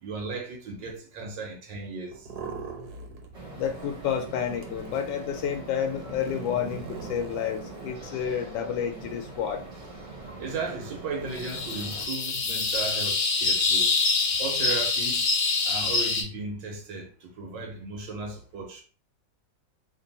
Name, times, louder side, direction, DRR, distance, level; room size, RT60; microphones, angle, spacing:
voice 1, 0.0-2.3 10.4-14.0 14.4-15.3 15.6-18.8, right 3 dB, 85° right, 1.6 m, -35 dB
sound 1, 2.1-3.3 3.6-7.9, right 5 dB, 65° right, 1.3 m, -42 dB
sound 2, 3.3-12.1, right 2 dB, 45° right, 1.2 m, -43 dB
voice 2, 3.5-9.6, left 8 dB, 85° left, 1.3 m, -30 dB
sound 3, 11.4-16.2, left 4 dB, 50° left, 0.9 m, -25 dB
3.0 x 2.9 x 4.0 m
omnidirectional pair, 1.9 m